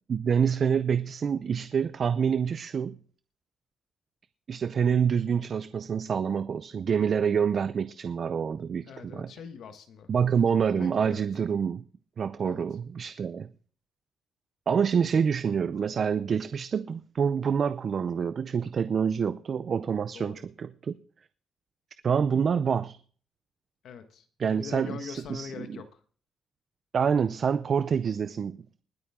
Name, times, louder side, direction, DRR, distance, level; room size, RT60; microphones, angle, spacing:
voice 1, 0.1-3.0 4.5-9.3 10.1-11.8 12.2-13.5 14.7-21.0 22.0-23.0 24.4-25.8 26.9-28.8, right 7 dB, 40° right, 0.5 m, -27 dB
voice 2, 8.9-10.1 10.7-11.2 12.4-12.6 20.1-20.4 23.8-25.9, left 6 dB, 70° left, 1.5 m, -42 dB
20.5 x 8.7 x 3.7 m
cardioid pair, 155°, 0 cm